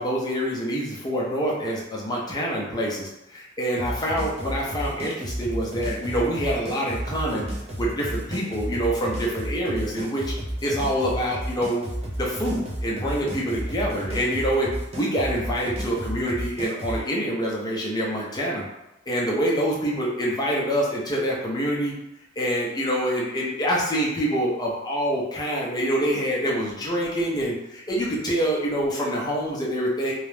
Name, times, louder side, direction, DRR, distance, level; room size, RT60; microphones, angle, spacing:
voice 1, 0.0-7.5 7.8-10.3 10.6-11.9 12.2-18.6 19.1-21.9 22.4-30.1, equal, 20° left, -4 dB, 0.5 m, -26 dB
sound 1, 3.8-17.0, right 1 dB, 30° right, 0.5 m, -32 dB
2.3 x 2.0 x 3.1 m, 0.92 s
head